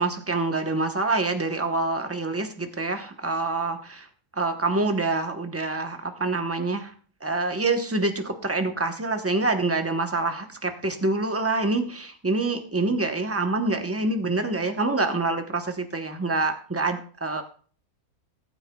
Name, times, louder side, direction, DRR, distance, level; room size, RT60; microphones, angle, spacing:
voice 1, 0.0-4.1 4.4-6.9 7.2-17.4, right 3 dB, 15° right, 6 dB, 0.7 m, -26 dB
19.0 x 8.9 x 2.3 m, 0.42 s
omnidirectional pair, 1.6 m